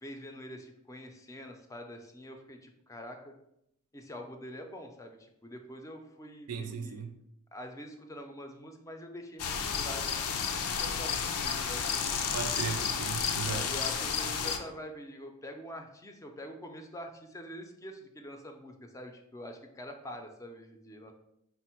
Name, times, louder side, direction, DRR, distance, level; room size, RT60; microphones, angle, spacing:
voice 1, 0.0-3.3 3.9-7.0 7.5-11.9 13.4-21.1, equal, 15° left, 4 dB, 0.4 m, -45 dB
voice 2, 6.5-7.1 12.3-13.7, right 6 dB, 75° right, 5 dB, 0.5 m, -36 dB
sound 1, 9.4-14.6, left 6 dB, 75° left, 0.4 m, -32 dB
4.3 x 2.0 x 4.3 m, 0.79 s
head